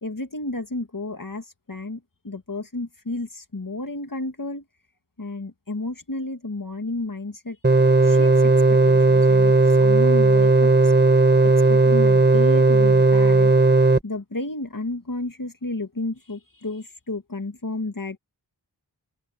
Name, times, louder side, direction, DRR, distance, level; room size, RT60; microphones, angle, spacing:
voice 1, 0.0-4.6 5.2-7.6 8.0-9.5 9.8-10.9 11.4-13.5 14.0-18.2, left 2 dB, 50° left, 2.3 m, -32 dB
sound 1, 7.6-14.0, right 3 dB, 25° right, 1.1 m, -16 dB
open air
wide cardioid pair, 40°, 41 cm